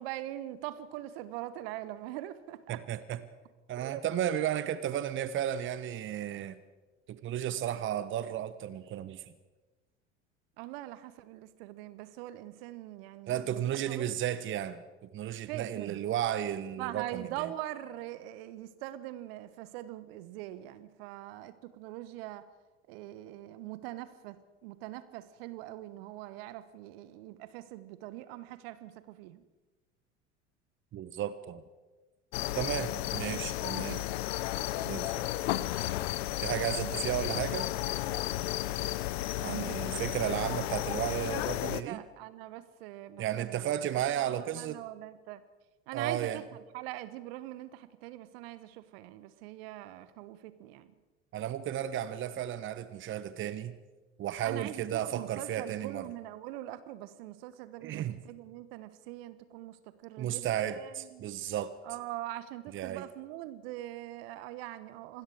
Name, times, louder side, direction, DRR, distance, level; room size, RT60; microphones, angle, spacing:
voice 1, 0.0-2.8 3.8-4.0 10.6-13.6 13.9-14.1 15.4-16.0 16.8-22.5 22.9-29.4 39.4-40.1 41.8-43.7 44.2-45.4 45.9-50.9 54.4-61.3 61.8-65.2, right 14 dB, 55° right, 14 dB, 1.3 m, -42 dB
voice 2, 2.7-3.2 3.7-6.6 7.1-9.2 13.3-17.5 30.9-31.6 32.5-34.0 34.8-35.3 36.4-37.7 39.4-42.0 43.2-44.8 45.9-46.4 51.3-53.8 54.2-56.1 57.8-58.2 60.2-61.8 62.7-63.0, right 11 dB, 35° right, 14 dB, 1.2 m, -34 dB
sound 1, 32.3-41.8, left 15 dB, 60° left, 1.0 m, -33 dB
26.5 x 20.5 x 4.9 m, 1.2 s
figure-of-eight pair, 70°, 35 cm